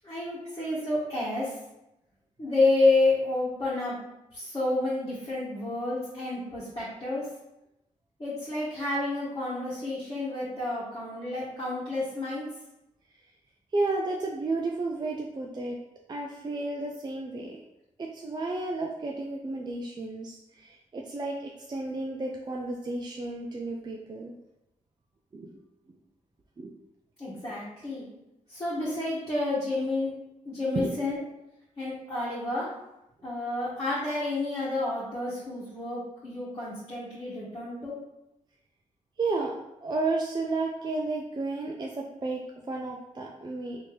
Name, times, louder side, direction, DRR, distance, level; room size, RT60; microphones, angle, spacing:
voice 1, 0.0-1.6 2.4-4.0 4.3-7.3 8.2-12.5 27.2-28.0 28.5-30.1 30.4-31.2 31.8-32.7 33.2-38.0, left 2 dB, 30° left, -9 dB, 1.3 m, -29 dB
voice 2, 13.7-15.8 16.1-17.6 18.0-24.3 25.3-25.5 26.6-26.7 30.7-31.0 39.2-39.6 39.8-43.8, right 3 dB, 30° right, 0 dB, 0.4 m, -32 dB
3.4 x 2.8 x 3.1 m, 0.90 s
cardioid pair, 65°, 14 cm